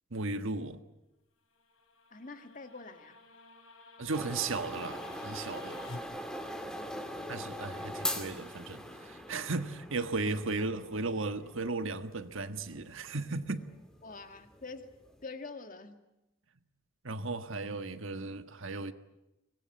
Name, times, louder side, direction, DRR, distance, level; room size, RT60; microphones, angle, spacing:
voice 1, 0.1-0.8 4.0-5.8 7.3-13.6 17.0-18.9, right 3 dB, 65° right, 1.5 m, -35 dB
sound 1, 1.6-6.0, left 3 dB, 75° left, 5.1 m, -51 dB
voice 2, 2.1-3.2 6.8-7.1 14.0-14.9 15.2-16.0, left 3 dB, 40° left, 2.0 m, -46 dB
sound 2, 4.1-15.2, equal, 5° left, 2.4 m, -42 dB
25.0 x 21.0 x 9.5 m
head